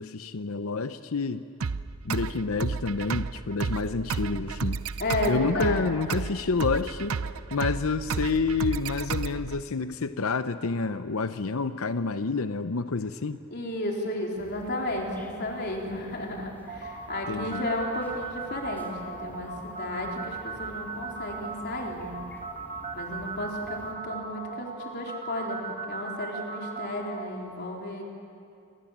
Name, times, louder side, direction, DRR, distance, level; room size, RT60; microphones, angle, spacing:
voice 1, 0.0-1.4 2.0-4.8 5.3-7.2 7.5-13.4 17.3-17.6, left 4 dB, 75° left, 11 dB, 0.7 m, -29 dB
sound 1, 1.6-9.6, right 5 dB, 80° right, 0.6 m, -32 dB
voice 2, 5.0-5.8 13.5-22.2 22.9-28.0, left 1 dB, 50° left, -1 dB, 4.0 m, -33 dB
sound 2, 14.3-23.9, equal, 10° left, 2.5 m, -50 dB
sound 3, 16.7-27.3, right 4 dB, 35° right, 2.2 m, -37 dB
27.5 x 22.5 x 7.4 m, 2.5 s
head